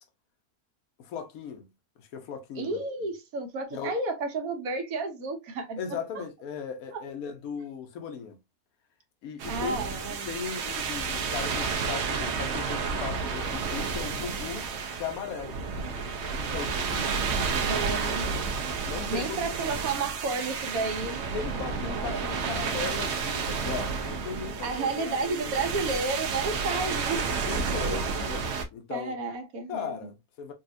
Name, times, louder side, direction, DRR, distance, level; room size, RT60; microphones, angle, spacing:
voice 1, 1.0-1.7 2.0-2.8 3.7-4.0 5.8-8.4 9.2-9.8 10.3-14.7 15.0-15.6 16.3-17.2 18.8-19.5 21.3-25.6 27.4-29.2 29.7-30.5, left 6 dB, 80° left, 1.2 m, -37 dB
voice 2, 2.6-6.0 6.9-7.0 9.5-10.3 17.0-18.5 19.1-21.5 21.9-22.2 24.6-27.3 27.8-28.0 28.9-30.0, right 3 dB, 80° right, 1.3 m, -32 dB
sound 1, 9.4-28.7, right 5 dB, 60° right, 0.8 m, -31 dB
4.1 x 2.4 x 2.5 m
omnidirectional pair, 1.5 m